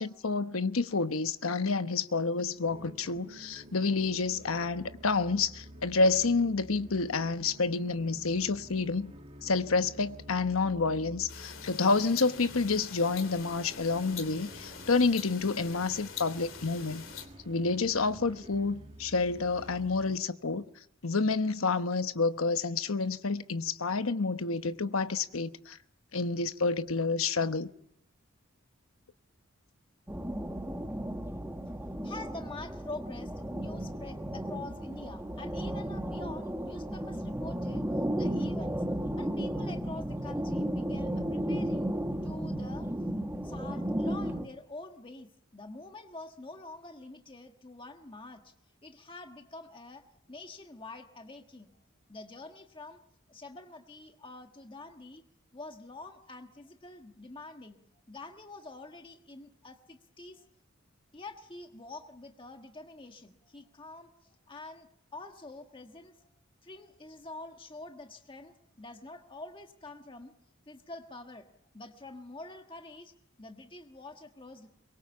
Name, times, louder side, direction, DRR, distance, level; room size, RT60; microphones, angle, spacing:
voice 1, 0.0-9.1 9.4-17.0 17.5-20.6 21.0-25.8 26.1-27.7, left 4 dB, 80° left, 1.1 m, -29 dB
sound 1, 2.6-20.2, equal, 30° right, 2.1 m, -50 dB
sound 2, 11.3-17.3, left 7 dB, 65° left, 3.2 m, -45 dB
sound 3, 30.1-44.5, right 1 dB, 10° right, 1.3 m, -34 dB
voice 2, 32.0-37.9 38.2-41.9 42.2-48.5 48.8-51.7 52.1-53.0 53.3-55.2 55.5-57.8 58.1-60.5 61.1-66.3 66.6-70.3 70.7-71.5 71.7-73.1 73.4-74.7, left 2 dB, 25° left, 1.4 m, -46 dB
23.5 x 22.5 x 7.1 m
head